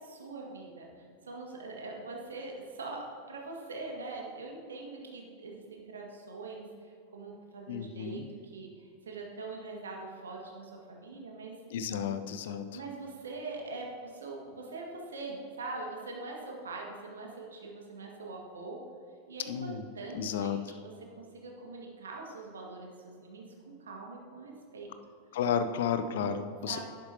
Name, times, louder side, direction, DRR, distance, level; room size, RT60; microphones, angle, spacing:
voice 1, 0.0-11.6 12.7-18.8 19.3-24.9 26.7-26.8, right 3 dB, 70° right, 0 dB, 1.8 m, -43 dB
voice 2, 7.7-8.3 11.7-12.6 19.5-19.9 20.1-20.6 25.3-26.8, left 7 dB, 55° left, 9 dB, 0.7 m, -32 dB
11.0 x 11.0 x 2.8 m, 2.5 s
figure-of-eight pair, 90°, 0 cm